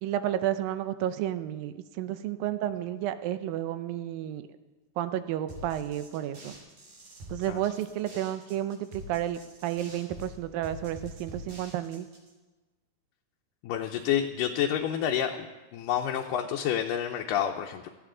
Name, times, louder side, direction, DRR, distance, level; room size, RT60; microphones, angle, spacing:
voice 1, 0.0-4.5 5.0-6.5 7.3-12.1, right 12 dB, 90° right, 11 dB, 2.5 m, -31 dB
sound 1, 5.5-12.3, equal, 70° right, 5.2 m, -46 dB
voice 2, 13.6-15.5 15.7-17.9, left 9 dB, 80° left, 2 dB, 2.2 m, -29 dB
17.5 x 13.5 x 3.8 m, 1.2 s
omnidirectional pair, 4.0 m